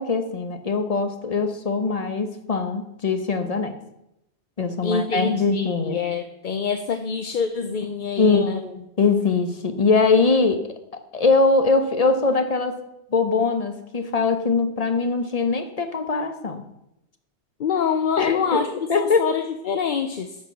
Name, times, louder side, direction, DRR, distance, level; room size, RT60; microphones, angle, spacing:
voice 1, 0.0-3.8 4.6-6.0 8.2-10.6 11.1-12.8 13.1-16.6 18.2-18.6 18.9-19.2, left 4 dB, 35° left, 7 dB, 1.0 m, -22 dB
voice 2, 4.8-8.6 17.6-18.7 19.0-20.4, left 6 dB, 50° left, 8 dB, 0.7 m, -25 dB
11.0 x 6.7 x 5.8 m, 0.85 s
omnidirectional pair, 1.2 m